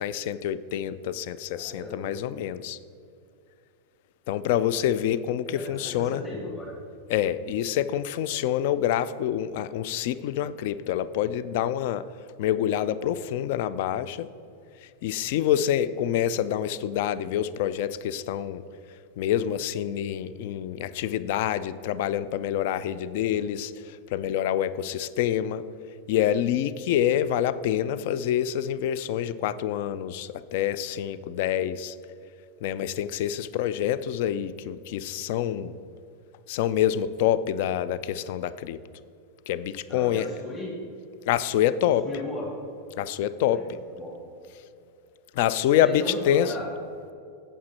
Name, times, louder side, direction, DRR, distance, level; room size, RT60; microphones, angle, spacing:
voice 1, 0.0-2.8 4.3-6.2 7.1-12.1 12.4-14.3 15.0-18.6 19.2-25.6 26.1-32.0 32.6-35.8 36.5-38.8 39.5-40.3 41.3-42.1 43.0-43.7 45.3-46.5, left 10 dB, 50° left, 16 dB, 0.3 m, -26 dB
voice 2, 1.5-2.1 5.4-6.7 39.9-40.7 42.0-42.5 43.5-43.6 43.9-44.1 45.8-46.7, left 1 dB, 20° left, -4 dB, 1.8 m, -36 dB
8.4 x 7.2 x 4.2 m, 2.5 s
figure-of-eight pair, 90°, 0 cm